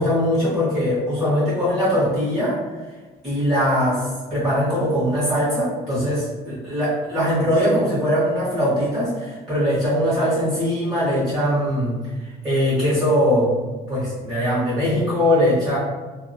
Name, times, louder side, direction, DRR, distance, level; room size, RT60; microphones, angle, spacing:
voice 1, 0.0-2.6 3.2-13.5 13.9-15.8, equal, 25° right, -11 dB, 1.3 m, -21 dB
2.8 x 2.0 x 2.6 m, 1.3 s
cardioid pair, 110°, 17 cm